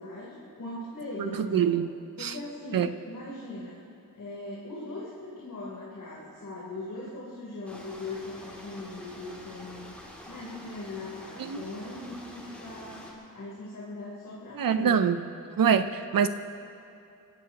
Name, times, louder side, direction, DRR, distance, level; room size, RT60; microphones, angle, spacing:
voice 1, 0.0-1.7 2.2-3.8 4.1-10.0 10.3-15.0, left 2 dB, 55° left, -8 dB, 3.8 m, -40 dB
voice 2, 1.2-1.9 2.2-2.4 2.7-2.9 11.4-11.6 14.6-15.2 15.6-16.3, right 7 dB, 75° right, 10 dB, 0.8 m, -24 dB
sound 1, 7.7-13.1, equal, 5° left, 2.9 m, -46 dB
29.5 x 16.0 x 3.0 m, 2.7 s
wide cardioid pair, 180°, 35 cm